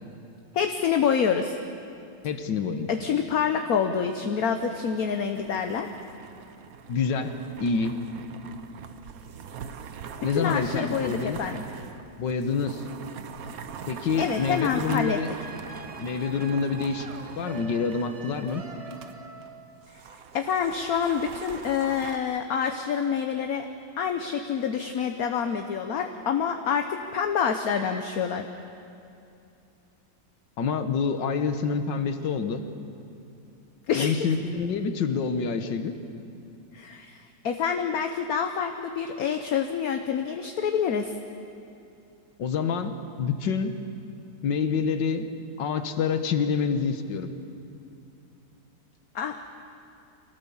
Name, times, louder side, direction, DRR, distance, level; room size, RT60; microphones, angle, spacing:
voice 1, 0.5-1.6 2.9-5.9 10.3-11.6 14.2-15.2 19.9-20.0 20.3-23.6 24.0-26.9 27.1-28.5 33.9-34.2 36.7-37.2 37.4-41.1 49.1-49.5, left 7 dB, 60° left, 6 dB, 1.3 m, -27 dB
voice 2, 2.2-2.9 6.9-8.0 10.2-11.4 12.2-12.8 13.9-15.3 16.0-17.1 17.4-18.6 30.6-32.6 34.0-35.9 42.4-42.9 43.2-43.8 44.4-45.3 45.6-47.3, left 5 dB, 85° left, 8 dB, 1.9 m, -27 dB
sound 1, 4.0-19.1 19.4-19.5 19.8-22.2, right 7 dB, 60° right, 1.2 m, -42 dB
sound 2, 14.3-19.8, right 3 dB, 25° right, 1.0 m, -44 dB
25.5 x 18.0 x 7.1 m, 2.7 s
omnidirectional pair, 1.9 m